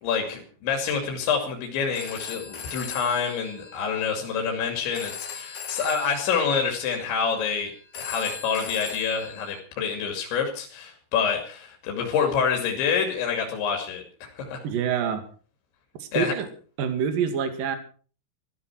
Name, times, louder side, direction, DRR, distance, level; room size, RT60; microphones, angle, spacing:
voice 1, 0.0-14.6 16.1-16.3, left 6 dB, 70° left, 2 dB, 4.9 m, -27 dB
Telephone, 1.8-9.6, left 6 dB, 50° left, 2.0 m, -40 dB
voice 2, 14.6-15.2 16.0-16.5 16.8-17.8, right 7 dB, 50° right, 8 dB, 3.4 m, -26 dB
15.0 x 14.0 x 6.3 m, 0.42 s
omnidirectional pair, 5.6 m